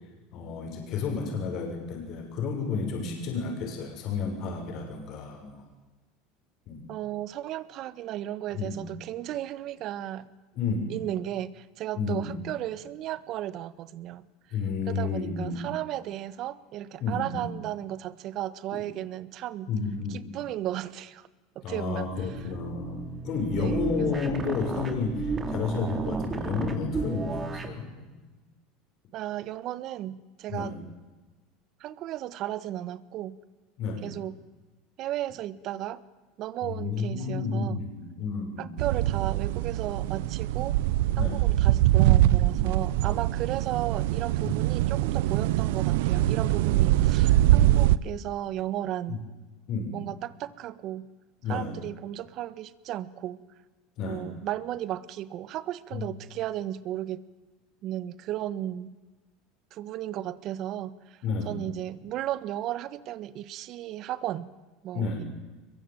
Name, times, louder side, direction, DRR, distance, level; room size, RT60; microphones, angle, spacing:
voice 1, 0.3-5.6 6.7-6.9 8.6-8.8 10.5-10.9 12.0-12.4 14.5-15.6 17.0-17.5 19.7-20.3 21.6-23.0 23.2-28.1 30.5-30.7 33.8-34.0 36.6-38.7 41.2-41.4 44.4-44.6 47.5-47.9 49.1-49.2 49.7-49.9 51.4-51.7 54.0-54.2 55.9-56.1 61.2-61.5 64.9-65.2, left 5 dB, 55° left, 2 dB, 6.8 m, -31 dB
voice 2, 6.9-10.3 10.9-14.3 14.9-19.7 20.1-21.3 21.5-22.1 23.5-24.1 29.1-30.8 31.8-33.4 34.0-34.4 35.0-36.0 36.4-37.8 38.6-40.8 41.2-49.2 49.9-51.1 51.5-53.4 54.0-57.2 57.8-59.0 59.7-61.2 61.4-64.5 64.8-65.2, right 13 dB, 55° right, 17 dB, 1.4 m, -34 dB
sound 1, 22.1-27.8, right 4 dB, 25° right, 3.8 m, -33 dB
sound 2, 38.8-48.0, right 15 dB, 75° right, 0.7 m, -23 dB
23.0 x 22.0 x 9.3 m, 1.2 s
supercardioid pair, 95°, 0 cm